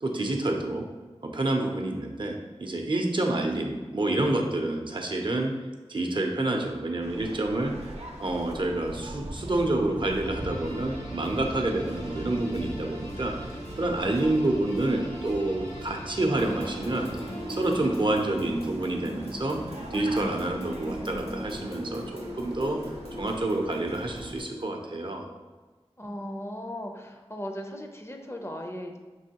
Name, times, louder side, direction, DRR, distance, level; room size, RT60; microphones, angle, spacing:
voice 1, 0.0-0.8 1.2-5.5 5.9-7.9 8.2-13.3 13.8-17.1 17.5-19.6 19.9-22.0 22.4-22.8 23.2-25.2, right 2 dB, 50° right, 2 dB, 0.5 m, -28 dB
voice 2, 3.4-4.0 13.9-14.8 26.0-29.0, equal, 25° left, 2 dB, 0.5 m, -38 dB
Waves surf, 7.0-24.4, right 1 dB, 90° right, 0.6 m, -41 dB
sound 1, 10.2-18.6, equal, 85° left, 1.2 m, -44 dB
sound 2, 16.3-24.6, equal, 65° left, 0.8 m, -39 dB
5.3 x 3.0 x 2.8 m, 1.3 s
wide cardioid pair, 50°, 11 cm